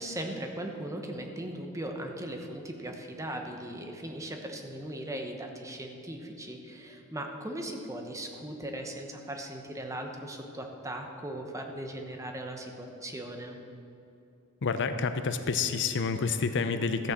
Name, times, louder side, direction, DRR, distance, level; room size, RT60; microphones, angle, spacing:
voice 1, 0.0-13.6, right 1 dB, 15° right, 3 dB, 1.0 m, -38 dB
voice 2, 14.6-17.1, left 5 dB, 55° left, 9 dB, 0.6 m, -29 dB
13.5 x 6.2 x 7.1 m, 2.7 s
head